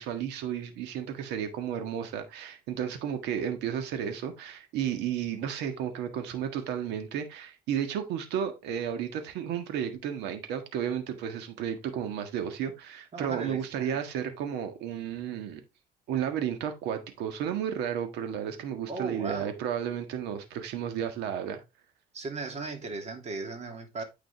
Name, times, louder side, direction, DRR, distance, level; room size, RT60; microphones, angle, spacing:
voice 1, 0.0-15.6 16.1-21.6, right 9 dB, 85° right, 1.6 m, -33 dB
voice 2, 13.1-14.0 18.9-19.5 22.1-24.0, right 3 dB, 40° right, 2.6 m, -37 dB
9.3 x 5.1 x 3.5 m
cardioid pair, 110°, 17 cm